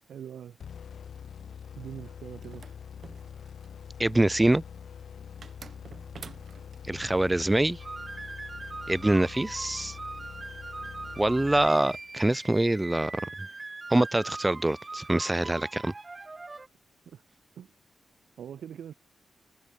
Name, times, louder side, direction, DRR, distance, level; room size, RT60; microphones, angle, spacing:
voice 1, 0.1-0.6 1.8-2.7 17.1-17.2 17.6-17.7 18.4-18.9, right 9 dB, 85° right, 6.8 m, -42 dB
sound 1, 0.6-12.3, left 7 dB, 75° left, 1.9 m, -44 dB
sound 2, 2.4-3.8 5.4-6.8, right 5 dB, 60° right, 2.4 m, -48 dB
voice 2, 4.0-4.6 6.8-7.8 8.9-10.0 11.2-13.3 13.9-15.9, right 1 dB, 15° right, 0.4 m, -25 dB
sound 3, 7.8-16.7, right 3 dB, 30° right, 6.9 m, -41 dB
cardioid pair, 65°, 0 cm